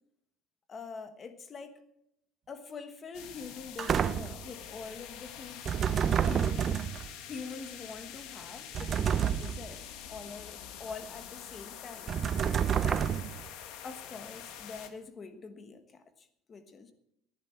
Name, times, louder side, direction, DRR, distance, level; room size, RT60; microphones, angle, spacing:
voice 1, 0.7-1.8 2.5-5.8 6.2-6.8 7.3-12.1 12.8-13.2 13.8-16.9, left 4 dB, 20° left, 9 dB, 1.3 m, -45 dB
sound 1, 3.1-14.9, left 9 dB, 60° left, 1.7 m, -46 dB
sound 2, 3.8-4.5 5.6-7.1 8.7-9.7 12.1-13.5, right 8 dB, 25° right, 0.4 m, -29 dB
19.5 x 11.0 x 4.6 m, 0.78 s
cardioid pair, 175°, 0 cm